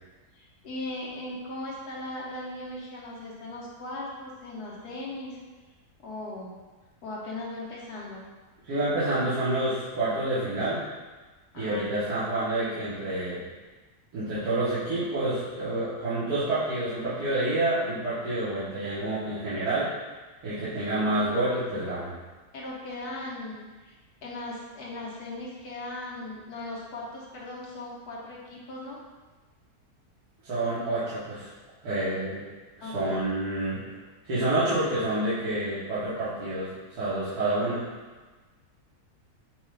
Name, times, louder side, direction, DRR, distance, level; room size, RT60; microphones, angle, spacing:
voice 1, 0.3-5.4 6.0-6.5 7.0-8.2 11.5-12.1 22.5-23.9 24.2-29.0 32.8-33.2, left 2 dB, 80° left, -4 dB, 1.5 m, -38 dB
voice 2, 8.6-10.8 11.5-13.4 14.1-19.9 20.4-22.1 30.4-31.5 31.8-32.4 32.8-33.9 34.2-37.8, right 1 dB, 85° right, -13 dB, 1.6 m, -28 dB
6.4 x 2.3 x 3.3 m, 1.3 s
omnidirectional pair, 1.6 m